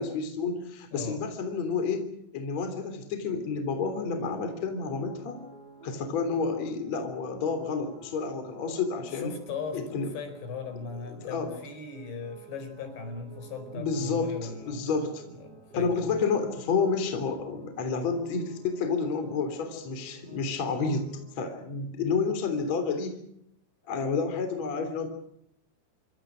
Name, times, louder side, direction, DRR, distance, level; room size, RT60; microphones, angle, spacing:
voice 1, 0.0-2.1 2.3-5.4 5.8-9.3 9.7-10.1 11.1-11.5 13.7-15.2 15.7-23.2 23.9-25.1, left 5 dB, 40° left, 7 dB, 4.1 m, -30 dB
voice 2, 0.9-1.2 9.1-9.8 10.1-14.9 15.3-16.1, left 4 dB, 65° left, 7 dB, 7.1 m, -38 dB
sound 1, 4.2-21.3, right 3 dB, 65° right, 9.9 m, -51 dB
28.0 x 25.0 x 6.3 m, 0.75 s
omnidirectional pair, 5.4 m